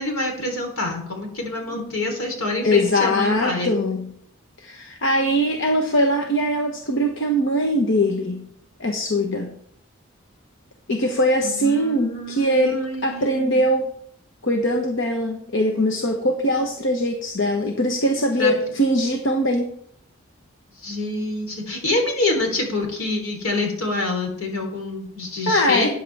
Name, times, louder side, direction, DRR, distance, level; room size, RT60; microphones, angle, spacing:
voice 1, 0.0-3.7 11.4-13.6 18.4-18.5 20.8-25.9, left 2 dB, 75° left, 2 dB, 3.7 m, -26 dB
voice 2, 2.6-4.1 4.6-8.5 8.8-9.5 10.9-13.9 14.4-19.8 25.5-25.9, equal, 60° left, 3 dB, 1.1 m, -21 dB
13.0 x 9.4 x 3.5 m, 0.69 s
head